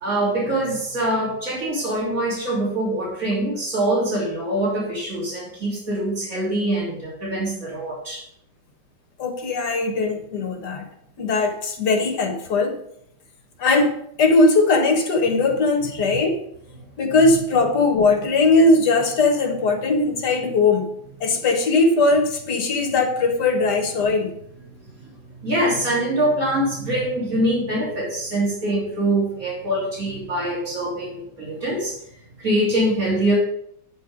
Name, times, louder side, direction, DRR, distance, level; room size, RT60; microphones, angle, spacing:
voice 1, 0.0-8.2 25.0-25.1 25.4-32.0 32.4-33.3, right 1 dB, 45° right, -8 dB, 2.7 m, -24 dB
voice 2, 9.2-10.9 11.2-12.8 13.6-16.4 17.0-20.9 21.2-24.3, left 3 dB, 60° left, 4 dB, 1.5 m, -19 dB
9.3 x 4.4 x 4.8 m, 0.72 s
omnidirectional pair, 2.1 m